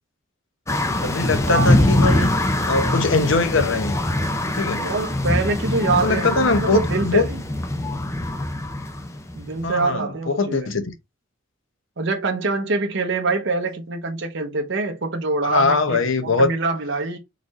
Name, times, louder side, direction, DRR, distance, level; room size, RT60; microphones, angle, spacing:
sound 1, 0.7-9.8, left 1 dB, 15° left, 0.6 m, -23 dB
voice 1, 1.0-2.3 2.7-4.0 4.5-4.9 6.0-7.3 9.6-10.9 15.4-16.5, left 3 dB, 70° left, 0.8 m, -21 dB
voice 2, 4.8-7.4 9.3-10.7 12.0-17.2, right 3 dB, 60° right, 0.9 m, -25 dB
4.0 x 3.1 x 4.0 m
head